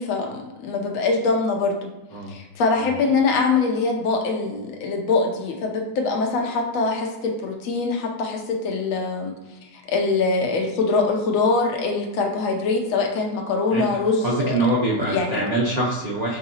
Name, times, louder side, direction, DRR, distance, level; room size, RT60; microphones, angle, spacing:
voice 1, 0.0-1.8 2.3-9.3 9.7-14.6 14.9-15.4, left 3 dB, 65° left, 2 dB, 1.0 m, -23 dB
voice 2, 13.7-16.4, right 1 dB, 90° right, -7 dB, 0.3 m, -24 dB
4.7 x 2.7 x 2.8 m, 1.0 s
omnidirectional pair, 1.7 m